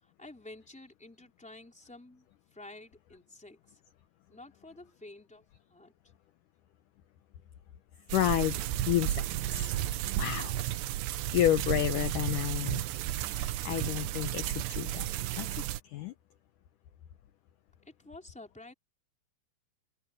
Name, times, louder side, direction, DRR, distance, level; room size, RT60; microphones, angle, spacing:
voice 1, 0.0-3.8 4.3-5.9 17.8-18.7, left 2 dB, ahead, 3.2 m, -51 dB
voice 2, 8.1-8.6 8.9-9.7 10.1-10.6 11.3-12.8 13.3-15.1 15.4-16.1, left 13 dB, 75° left, 1.9 m, -30 dB
sound 1, 8.1-15.8, right 13 dB, 80° right, 3.0 m, -33 dB
omnidirectional pair, 4.8 m